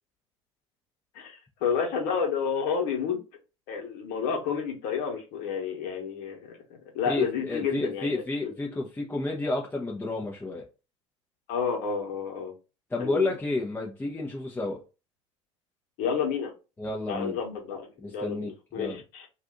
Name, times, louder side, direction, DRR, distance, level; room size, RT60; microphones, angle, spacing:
voice 1, 1.1-3.2 3.7-6.6 6.9-8.5 11.5-12.5 13.0-13.3 16.0-16.5 17.1-19.3, left 6 dB, 65° left, 1.2 m, -30 dB
voice 2, 7.1-10.6 12.9-14.8 16.8-17.4 18.0-18.5 18.8-19.0, left 2 dB, 10° left, 0.7 m, -31 dB
2.6 x 2.4 x 3.7 m
hypercardioid pair, 75°, 16 cm